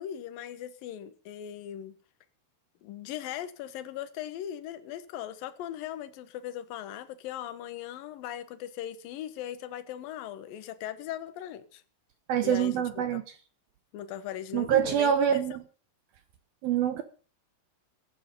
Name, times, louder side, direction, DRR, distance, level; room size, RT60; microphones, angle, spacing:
voice 1, 0.0-2.0 2.8-11.8 12.4-13.2 13.9-15.1, left 11 dB, 70° left, 2.3 m, -39 dB
voice 2, 12.3-13.2 14.5-15.6 16.6-17.0, right 9 dB, 75° right, 2.2 m, -25 dB
15.5 x 12.0 x 5.3 m
omnidirectional pair, 5.6 m